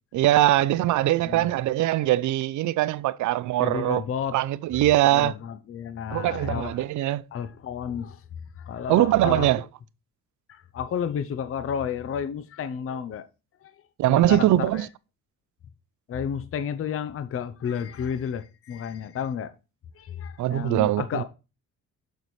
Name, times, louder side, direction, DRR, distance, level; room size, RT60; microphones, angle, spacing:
voice 1, 0.1-4.0 4.3-5.3 6.1-7.2 8.9-9.6 14.0-14.9 20.4-21.2, right 15 dB, 75° right, 0.5 m, -22 dB
voice 2, 1.2-1.5 3.6-4.4 5.1-6.8 7.3-8.2 8.6-9.5 10.5-13.3 13.6-13.7 14.1-14.9 16.1-19.5 20.0-21.2, left 8 dB, 50° left, 0.7 m, -31 dB
6.8 x 6.4 x 3.1 m
cardioid pair, 90°, 30 cm